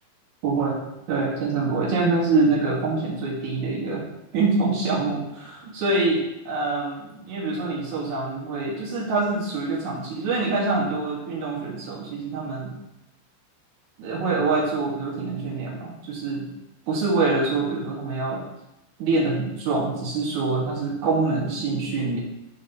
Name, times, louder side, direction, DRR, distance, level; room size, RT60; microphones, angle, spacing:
voice 1, 0.4-0.8 1.1-4.0 4.3-12.7 14.0-16.5 16.9-18.4 19.0-22.2, right 3 dB, 85° right, -4 dB, 1.6 m, -25 dB
7.4 x 4.3 x 5.3 m, 0.89 s
omnidirectional pair, 5.3 m